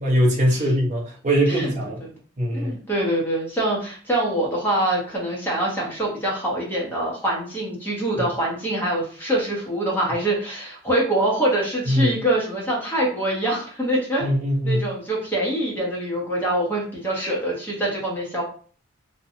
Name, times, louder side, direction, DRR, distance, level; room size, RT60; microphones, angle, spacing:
voice 1, 0.0-2.0 2.4-2.7 11.9-12.1 14.2-14.9, equal, 35° right, -1 dB, 0.7 m, -21 dB
voice 2, 2.5-14.3 14.6-18.4, right 1 dB, 10° left, -4 dB, 0.8 m, -24 dB
2.8 x 2.2 x 2.6 m, 0.43 s
head